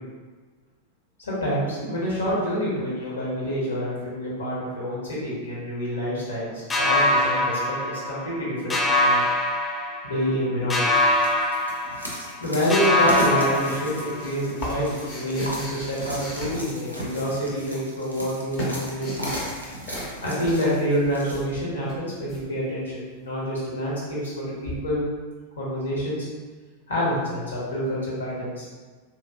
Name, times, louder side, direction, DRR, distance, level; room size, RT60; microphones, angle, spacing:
voice 1, 1.2-9.2 10.0-10.9 12.4-19.3 20.2-25.0 25.6-26.3 26.9-28.7, equal, 70° left, -7 dB, 1.0 m, -27 dB
sound 1, 6.7-8.4 8.7-10.4 10.7-12.4 12.7-14.4, left 1 dB, 15° left, 0.3 m, -23 dB
sound 2, 10.9-21.4, equal, 85° right, 0.5 m, -36 dB
sound 3, 13.9-17.3 18.0-19.6 19.9-20.2 20.4-22.4 24.7-24.8, left 1 dB, 40° left, 0.8 m, -38 dB
2.9 x 2.4 x 2.4 m, 1.4 s
figure-of-eight pair, 90°, 0 cm